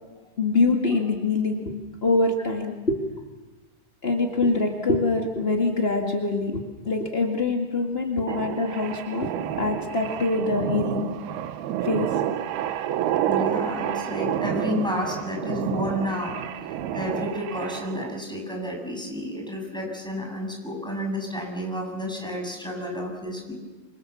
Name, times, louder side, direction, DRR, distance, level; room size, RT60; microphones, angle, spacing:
voice 1, 0.4-1.7 2.0-3.2 4.0-11.1 11.8-12.1, left 3 dB, 45° left, 1 dB, 0.7 m, -24 dB
sound 1, 8.3-18.2, right 11 dB, 75° right, 2.8 m, -29 dB
voice 2, 13.3-23.5, left 1 dB, ahead, 0 dB, 6.9 m, -31 dB
27.5 x 25.5 x 7.1 m, 1.3 s
omnidirectional pair, 4.9 m